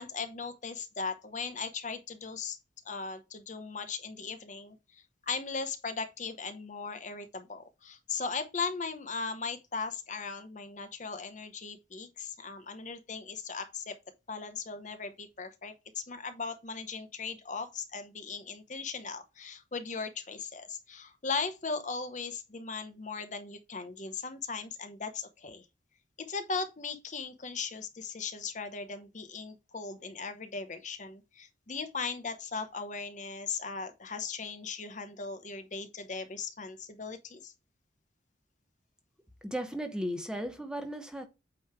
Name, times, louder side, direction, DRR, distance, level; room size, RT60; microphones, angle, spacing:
voice 1, 0.0-2.6 2.8-14.0 14.3-25.6 26.2-37.5, left 4 dB, 40° left, 0.9 m, -38 dB
voice 2, 39.4-41.3, equal, 5° right, 0.8 m, -35 dB
8.7 x 3.2 x 4.6 m
head